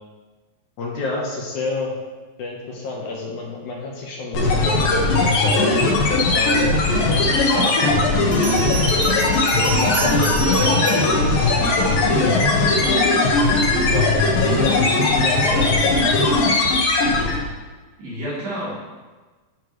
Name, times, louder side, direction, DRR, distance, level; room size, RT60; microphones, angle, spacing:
voice 1, 0.8-1.9 2.4-5.7 6.3-6.8 7.1-7.2 7.5-7.9 9.0-9.3 9.7-13.4 13.9-14.9 15.2-16.0, left 3 dB, 65° left, -2 dB, 2.5 m, -29 dB
sound 1, 4.3-17.5, left 2 dB, 80° left, 3.2 m, -18 dB
voice 2, 7.1-8.2 18.0-18.8, equal, 80° right, -8 dB, 5.0 m, -32 dB
Bell, 8.3-12.2, right 5 dB, 60° right, 2.9 m, -30 dB
14.0 x 6.1 x 3.2 m, 1.3 s
omnidirectional pair, 4.0 m